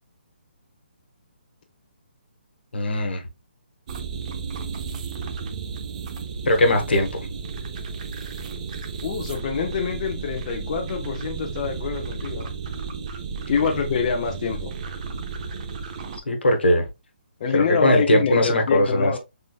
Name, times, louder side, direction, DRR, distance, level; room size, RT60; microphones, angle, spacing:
voice 1, 2.7-3.2 6.5-7.2 16.3-16.8 17.5-19.2, left 1 dB, 80° left, 1.2 m, -20 dB
sound 1, 3.9-16.2, right 5 dB, 40° right, 0.7 m, -33 dB
voice 2, 9.0-12.5 13.5-14.7 17.4-19.2, left 6 dB, 40° left, 0.7 m, -26 dB
3.8 x 3.8 x 2.3 m
hypercardioid pair, 150°, 6 cm